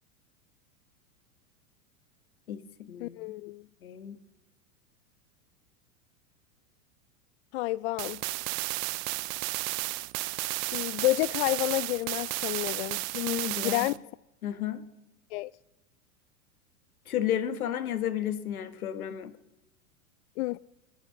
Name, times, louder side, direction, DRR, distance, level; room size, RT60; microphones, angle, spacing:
voice 1, 2.5-3.2 3.8-4.2 13.1-13.9 14.4-14.8 17.1-19.3, left 10 dB, 80° left, 1.6 m, -32 dB
voice 2, 3.0-3.6 7.5-8.2 10.7-13.0 13.6-13.9 15.3-15.5 20.4-20.6, left 19 dB, 55° left, 0.4 m, -29 dB
sound 1, 8.0-14.0, right 22 dB, 40° right, 0.5 m, -33 dB
20.5 x 10.5 x 5.9 m
hypercardioid pair, 100°, 43 cm